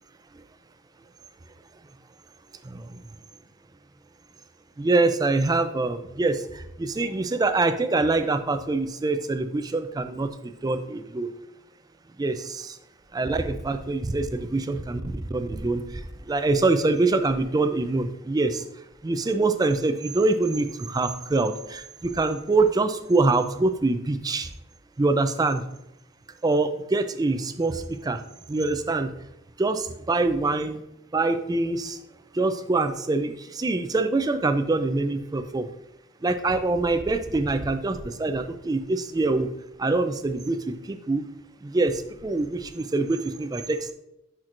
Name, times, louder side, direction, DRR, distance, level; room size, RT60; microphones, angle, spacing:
voice 1, 2.6-3.0 4.8-11.3 12.2-12.8 13.1-18.6 19.0-24.5 25.0-25.6 26.4-29.1 29.6-30.8 31.1-32.0 32.3-35.7 36.2-39.5 39.8-41.2 41.6-43.9, right 3 dB, 20° right, 10 dB, 0.3 m, -25 dB
10.5 x 4.4 x 2.5 m, 0.85 s
head